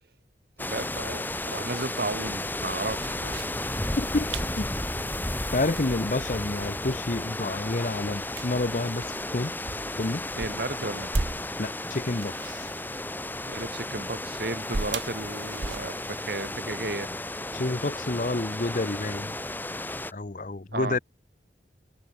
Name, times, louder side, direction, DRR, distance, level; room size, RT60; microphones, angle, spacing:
sound 1, 0.6-20.1, left 1 dB, 10° left, 3.6 m, -33 dB
voice 1, 0.6-3.4 10.4-11.1 13.5-17.2 20.7-21.0, right 2 dB, 60° right, 1.7 m, -34 dB
sound 2, 2.9-16.1, right 3 dB, 85° right, 1.2 m, -39 dB
voice 2, 4.0-4.3 4.6-4.7 5.5-9.0 9.3-9.5 10.0-10.2 11.6-12.6 17.5-19.3 20.1-21.0, left 2 dB, 45° left, 0.8 m, -29 dB
head